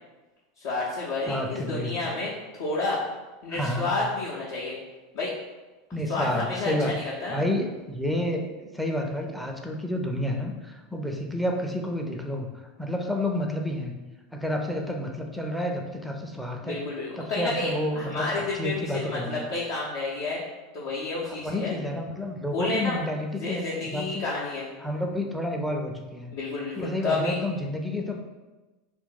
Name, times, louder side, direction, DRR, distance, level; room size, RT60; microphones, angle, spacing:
voice 1, 0.6-3.0 3.4-4.8 5.1-5.3 6.1-7.4 16.6-20.4 20.7-21.8 22.5-23.0 23.4-24.7 26.3-27.4, left 3 dB, 55° left, -7 dB, 0.7 m, -30 dB
voice 2, 1.3-2.1 3.5-4.0 5.9-7.0 7.3-12.5 12.8-14.0 14.3-16.8 17.2-19.4 21.2-24.3 24.8-26.3 26.8-28.2, left 1 dB, ahead, 2 dB, 0.5 m, -30 dB
2.8 x 2.6 x 3.8 m, 1.2 s
figure-of-eight pair, 80°, 0 cm